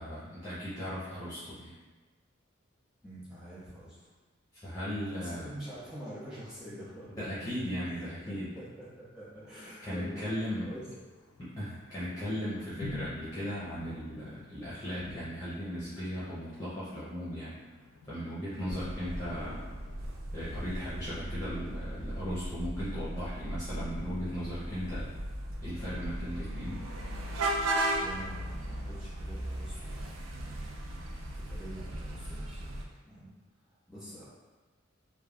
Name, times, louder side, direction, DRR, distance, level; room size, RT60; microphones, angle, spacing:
voice 1, 0.0-1.7 4.6-5.5 7.2-8.5 9.8-10.7 11.6-17.6 18.1-19.6 20.3-25.1 25.6-26.8, equal, 15° left, -11 dB, 0.5 m, -37 dB
voice 2, 3.0-4.1 5.1-7.2 7.9-11.0 27.9-30.0 30.4-30.9 31.3-32.8 33.0-33.3 33.9-34.3, equal, 5° right, -11 dB, 0.9 m, -46 dB
Thunder, 10.3-21.2, left 2 dB, 90° left, 0.3 m, -50 dB
sound 1, 18.7-32.8, right 1 dB, 80° right, 0.4 m, -36 dB
3.2 x 2.1 x 2.3 m, 1.3 s
head